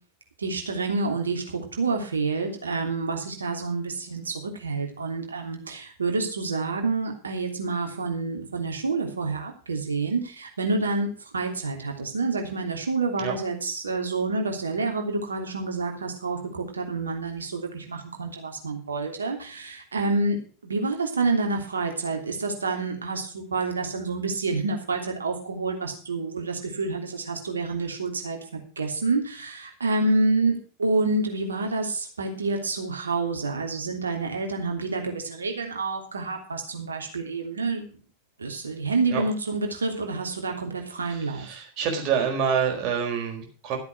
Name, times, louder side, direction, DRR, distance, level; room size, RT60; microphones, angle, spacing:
voice 1, 0.4-28.4 28.8-37.8 38.4-41.5, right 3 dB, 75° right, 3 dB, 3.1 m, -28 dB
voice 2, 41.1-43.8, right 7 dB, 40° right, 3 dB, 4.5 m, -27 dB
13.5 x 8.2 x 6.0 m, 0.39 s
figure-of-eight pair, 90°, 0 cm